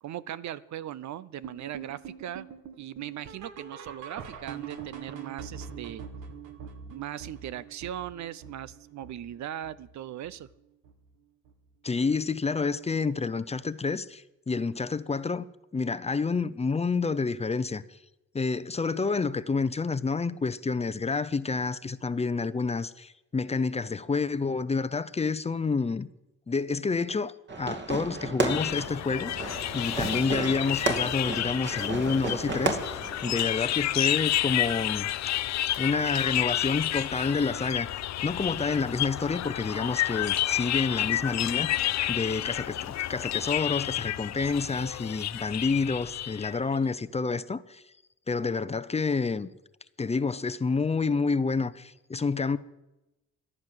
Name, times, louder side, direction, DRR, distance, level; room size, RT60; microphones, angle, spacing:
voice 1, 0.0-2.5 2.8-6.0 6.9-10.5, right 11 dB, 65° right, 0.7 m, -39 dB
sound 1, 1.4-10.6 10.8-11.2 11.5-11.6 12.1-12.2 12.7-12.8, right 7 dB, 85° right, 1.8 m, -44 dB
voice 2, 11.8-18.0 18.3-26.1 26.5-35.1 35.8-37.9 38.2-47.8 48.3-49.5 50.0-52.6, left 4 dB, 20° left, 0.7 m, -29 dB
Fireworks, 27.5-33.5, right 3 dB, 35° right, 2.4 m, -33 dB
sound 2, 28.5-46.8, left 13 dB, 65° left, 0.6 m, -30 dB
14.5 x 11.0 x 7.7 m
cardioid pair, 90°, 30 cm